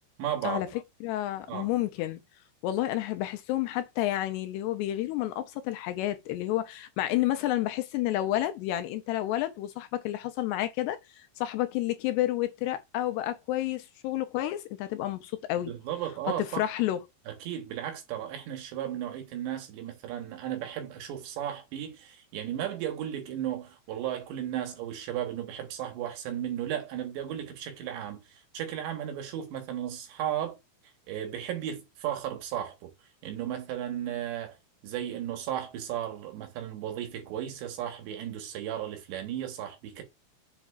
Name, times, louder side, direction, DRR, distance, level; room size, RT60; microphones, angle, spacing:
voice 1, 0.2-0.6 1.5-1.7 15.7-16.7 17.3-30.6 31.1-32.9 33.2-34.6 34.8-40.0, right 10 dB, 80° right, 3.6 m, -35 dB
voice 2, 1.0-2.2 2.6-15.7 16.4-17.0, left 14 dB, 80° left, 2.5 m, -30 dB
7.2 x 5.3 x 2.4 m
omnidirectional pair, 5.1 m